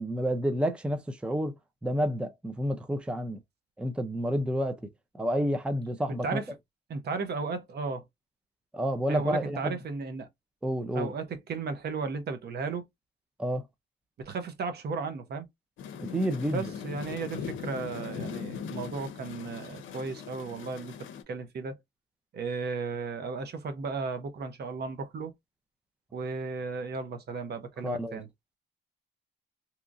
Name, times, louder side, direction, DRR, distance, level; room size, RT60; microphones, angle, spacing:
voice 1, 0.0-1.6 1.8-3.4 3.8-4.8 5.1-6.4 8.7-9.7 10.6-11.1 13.4-13.6 16.0-16.7 27.8-28.2, equal, 5° right, 0.5 m, -29 dB
voice 2, 6.1-6.5 6.9-8.0 9.1-10.3 10.9-12.8 14.2-15.5 16.5-21.0 21.3-21.7 22.3-25.3 26.1-28.3, right 4 dB, 55° right, 0.8 m, -35 dB
sound 1, 15.8-21.2, left 7 dB, 75° left, 0.6 m, -40 dB
2.8 x 2.5 x 2.4 m
cardioid pair, 90°, 20 cm